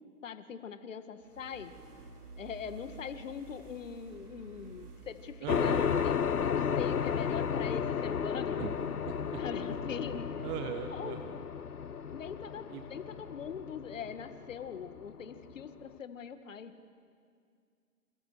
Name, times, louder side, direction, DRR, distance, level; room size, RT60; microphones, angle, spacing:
voice 1, 0.2-1.7 2.4-5.8 6.0-8.6 9.4-10.4 10.9-11.2 12.1-16.7, left 7 dB, 55° left, 10 dB, 2.0 m, -42 dB
sound 1, 1.2-15.1, right 4 dB, 75° right, 5.0 m, -53 dB
voice 2, 5.4-6.0 8.6-8.7 9.0-9.6 10.4-11.5 12.7-12.8, right 10 dB, 10° right, 7 dB, 0.6 m, -40 dB
sound 2, 5.5-15.6, left 7 dB, 75° left, 1.1 m, -33 dB
29.5 x 27.5 x 6.3 m, 2.2 s
figure-of-eight pair, 125°, 45 cm